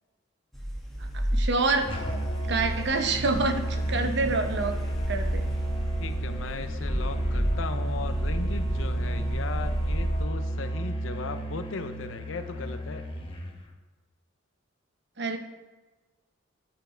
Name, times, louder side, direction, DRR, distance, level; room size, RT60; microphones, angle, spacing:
sound 1, 0.5-10.3, equal, ahead, 1.3 m, -32 dB
voice 1, 1.1-2.0 2.5-4.8 5.1-5.4 15.2-15.4, right 3 dB, 65° right, 6 dB, 0.9 m, -27 dB
Musical instrument, 1.9-13.6, right 1 dB, 30° left, 1.0 m, -31 dB
voice 2, 6.0-13.0, left 4 dB, 85° left, 9 dB, 0.7 m, -37 dB
9.6 x 5.6 x 4.4 m, 1.2 s
head